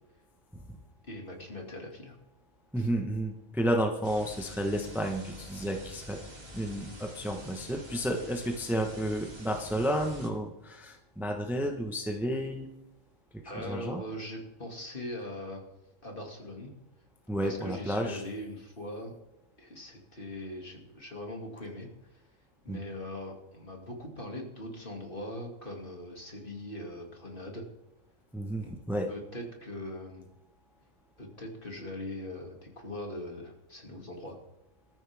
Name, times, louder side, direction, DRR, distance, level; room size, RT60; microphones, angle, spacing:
voice 1, 1.0-2.2 2.8-2.9 13.4-15.6 16.0-16.7 17.4-19.1 19.6-21.9 22.6-27.6 28.6-28.7 29.1-30.2 31.2-34.3, left 1 dB, 40° left, 1 dB, 2.9 m, -41 dB
voice 2, 2.7-6.2 6.5-12.7 13.6-14.0 17.3-18.2 22.7-22.8 28.3-29.1, equal, ahead, 3 dB, 1.2 m, -31 dB
sound 1, 4.0-10.3, equal, 50° right, 3.8 m, -47 dB
21.5 x 13.5 x 3.7 m, 0.93 s
omnidirectional pair, 1.4 m